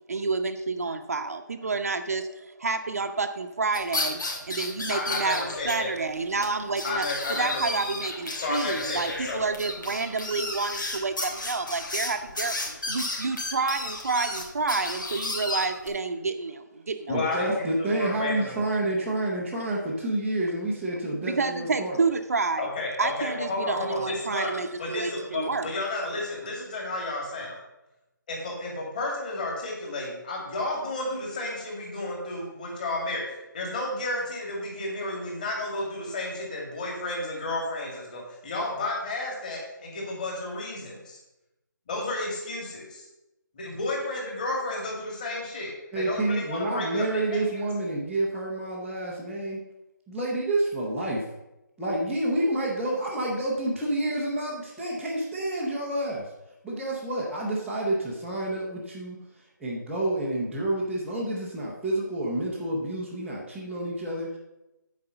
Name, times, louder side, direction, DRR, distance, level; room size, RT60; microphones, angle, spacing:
voice 1, 0.1-12.6 12.9-17.3 21.2-22.7 23.0-25.7, right 4 dB, 50° right, 7 dB, 0.7 m, -29 dB
sound 1, 3.7-5.7 6.0-6.1 6.4-6.5 6.8-15.9, left 2 dB, 75° left, 3.2 m, -33 dB
voice 2, 4.9-5.9 6.8-7.6 8.3-9.4 17.1-18.7 22.6-24.5 24.8-27.6 28.3-33.2 33.5-41.2 41.9-43.1 43.5-47.6, left 2 dB, 25° left, -2 dB, 2.3 m, -32 dB
voice 3, 17.1-22.0 45.9-49.6 50.1-51.2 51.8-56.3 56.6-59.2 59.6-64.4, right 1 dB, ahead, -11 dB, 0.5 m, -29 dB
9.6 x 4.9 x 6.8 m, 0.94 s
figure-of-eight pair, 170°, 11 cm